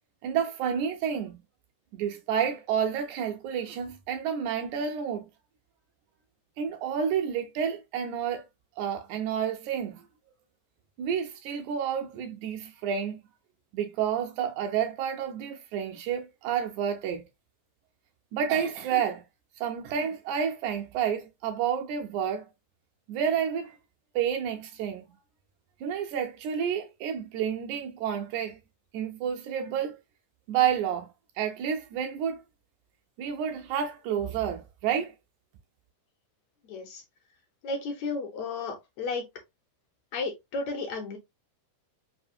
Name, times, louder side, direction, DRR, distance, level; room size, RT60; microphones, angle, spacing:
voice 1, 0.2-1.4 1.9-5.3 6.6-8.4 8.8-10.0 11.0-13.2 13.7-17.2 18.3-19.2 19.6-22.5 23.1-23.8 24.2-25.0 25.8-28.6 28.9-30.0 30.5-31.1 31.4-32.4 33.2-35.1, right 8 dB, 80° right, 1.8 m, -30 dB
voice 2, 36.7-37.0 37.6-39.2 40.1-41.2, left 3 dB, 75° left, 1.8 m, -33 dB
4.9 x 2.7 x 2.6 m
omnidirectional pair, 3.7 m